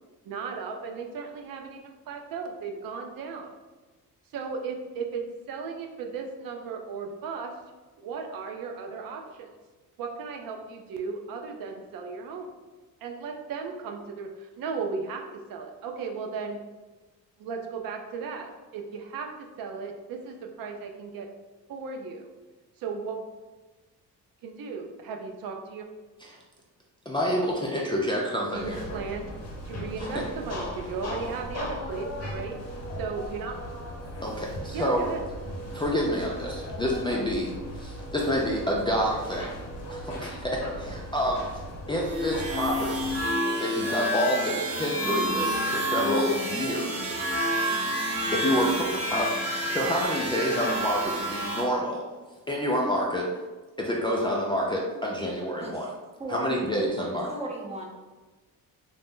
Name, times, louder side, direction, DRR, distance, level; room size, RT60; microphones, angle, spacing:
voice 1, 0.2-3.5 4.3-5.2 5.5-7.5 8.0-9.5 10.0-12.5 13.0-15.2 15.5-16.6 17.4-19.3 19.6-21.3 21.7-22.3 22.8-23.2 24.4-25.9 28.5-29.2 29.6-32.5 33.0-33.5 34.7-35.3, right 5 dB, 70° right, 3 dB, 0.5 m, -36 dB
voice 2, 27.1-28.8 30.1-30.3 34.2-35.1 35.7-37.5 37.8-39.6 39.9-41.5 41.9-43.0 43.6-47.2 48.3-52.0 52.5-53.3 53.8-55.9 56.3-57.3, equal, 15° left, -4 dB, 0.3 m, -28 dB
sound 1, 28.5-43.2, equal, 45° left, 0.9 m, -38 dB
sound 2, 42.1-51.7, equal, 40° right, 0.9 m, -29 dB
voice 3, 56.2-56.7 57.3-57.8, right 1 dB, 20° right, -2 dB, 0.7 m, -36 dB
2.6 x 2.0 x 3.5 m, 1.2 s
cardioid pair, 85°, 36 cm